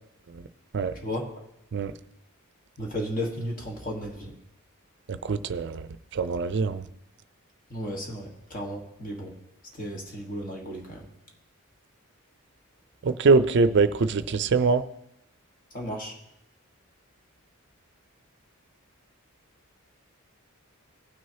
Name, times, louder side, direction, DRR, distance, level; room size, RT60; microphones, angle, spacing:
voice 1, 2.8-4.3 7.7-9.3 9.8-11.0 15.7-16.1, equal, 40° left, 0 dB, 1.5 m, -34 dB
voice 2, 5.1-5.9 6.1-6.8 13.0-14.8, right 4 dB, 55° right, 13 dB, 0.4 m, -23 dB
17.5 x 6.3 x 2.8 m, 0.82 s
head